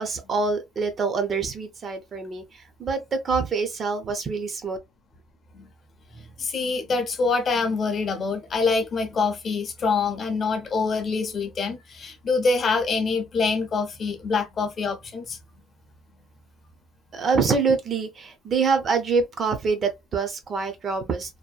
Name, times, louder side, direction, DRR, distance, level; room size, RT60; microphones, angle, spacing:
voice 1, 0.0-4.8 17.1-21.4, right 4 dB, 30° right, 0.4 m, -25 dB
voice 2, 6.1-15.4, left 4 dB, 30° left, 0.5 m, -25 dB
2.6 x 2.1 x 2.3 m
cardioid pair, 180°, 0 cm